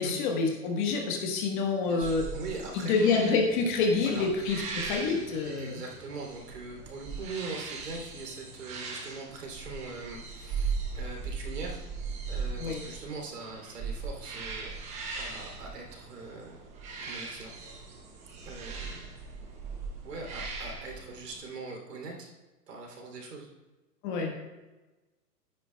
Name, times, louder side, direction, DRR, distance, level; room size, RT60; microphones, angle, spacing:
voice 1, 0.0-2.2 2.7-5.8 12.6-12.8 24.0-24.3, left 4 dB, 30° left, 1 dB, 1.5 m, -27 dB
voice 2, 1.8-3.2 3.8-4.3 5.4-11.8 12.3-14.7 15.1-16.6 17.0-17.5 18.4-19.1 20.0-22.3 22.7-23.5, right 3 dB, 75° right, 1 dB, 3.2 m, -42 dB
sound 1, 2.0-21.4, right 4 dB, 15° right, 1.0 m, -39 dB
13.0 x 9.9 x 2.3 m, 1.1 s
hypercardioid pair, 150°, 48 cm